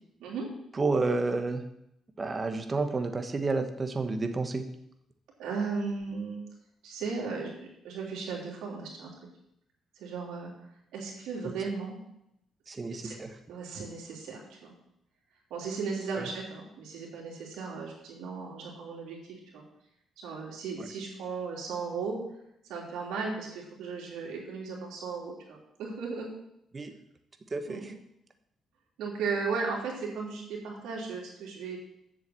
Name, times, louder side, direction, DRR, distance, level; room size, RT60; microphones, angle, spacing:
voice 1, 0.8-1.6 2.2-4.6 12.7-13.4 16.1-16.2 20.8-20.9 26.7-26.9 27.5-27.9, right 3 dB, 30° right, 6 dB, 1.2 m, -30 dB
voice 2, 5.4-6.4 6.8-9.1 10.0-10.5 10.9-11.9 12.9-13.1 13.5-14.7 15.5-19.2 19.5-19.6 20.2-22.2 22.7-26.3 27.7-27.9 29.0-31.8, right 4 dB, 90° right, -2 dB, 3.3 m, -36 dB
7.8 x 6.9 x 7.6 m, 0.79 s
cardioid pair, 90°, 0 cm